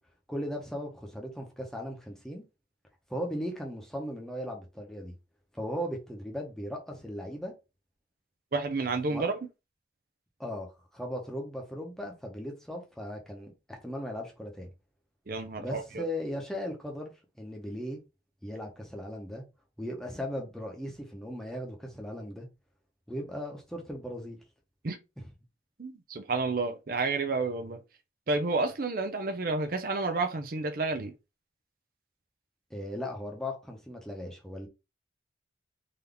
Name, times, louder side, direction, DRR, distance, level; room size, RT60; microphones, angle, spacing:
voice 1, 0.3-2.4 3.1-5.1 5.5-7.5 9.1-9.2 10.4-14.7 15.6-18.0 18.4-19.4 19.8-22.5 23.1-24.4 32.7-34.7, equal, 5° left, 0.9 m, -37 dB
voice 2, 8.5-9.3 15.3-16.0 24.8-25.0 25.8-27.8 28.3-31.1, right 3 dB, 55° right, 0.6 m, -30 dB
3.9 x 2.8 x 3.4 m
head